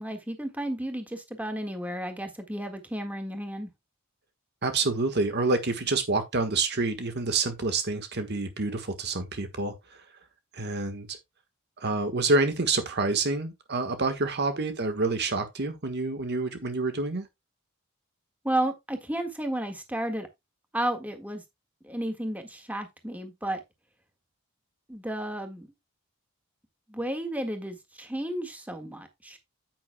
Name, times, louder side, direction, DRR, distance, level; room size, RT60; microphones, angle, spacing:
voice 1, 0.0-3.7 18.4-20.3 20.7-21.4 21.8-23.6 24.9-25.7 26.9-29.4, right 1 dB, 5° right, 1.7 m, -32 dB
voice 2, 4.6-10.0 10.5-11.2 11.8-17.3, right 3 dB, 50° right, 1.4 m, -28 dB
9.4 x 9.3 x 2.2 m
head